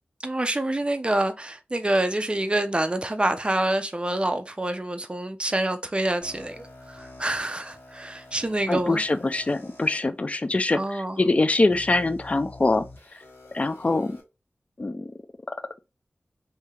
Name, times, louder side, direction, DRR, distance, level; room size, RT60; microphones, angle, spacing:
voice 1, 0.2-9.0 10.7-11.2, right 1 dB, 30° right, 0.4 m, -27 dB
sound 1, 6.2-10.0 10.7-10.8 11.7-14.2, left 2 dB, 90° left, 1.4 m, -47 dB
voice 2, 8.7-12.9 13.5-14.2 14.8-15.1, left 2 dB, 35° left, 0.4 m, -24 dB
3.5 x 2.7 x 2.9 m
wide cardioid pair, 55°, 4 cm